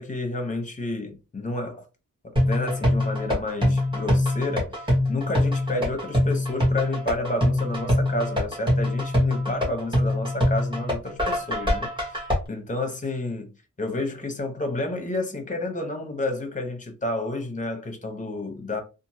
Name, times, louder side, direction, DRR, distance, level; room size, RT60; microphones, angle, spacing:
voice 1, 0.0-1.9 2.2-12.2 12.5-13.5 13.8-18.8, left 2 dB, 25° left, 0.7 m, -30 dB
sound 1, 2.4-12.3, left 1 dB, 15° right, 1.3 m, -24 dB
2.9 x 2.5 x 2.7 m
wide cardioid pair, 130°, 33 cm